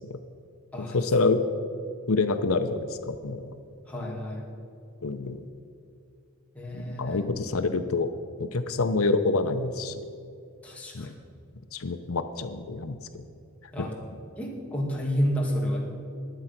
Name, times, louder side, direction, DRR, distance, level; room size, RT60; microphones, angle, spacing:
voice 1, 0.9-1.4 2.1-3.4 5.0-5.4 6.7-8.1 8.4-10.1 10.9-11.1 11.7-13.0, left 3 dB, 85° left, 9 dB, 0.8 m, -27 dB
voice 2, 3.9-4.5 6.5-7.2 10.6-11.1 13.7-13.9 14.4-15.8, equal, 5° left, -3 dB, 2.4 m, -30 dB
21.0 x 7.9 x 6.0 m, 2.5 s
head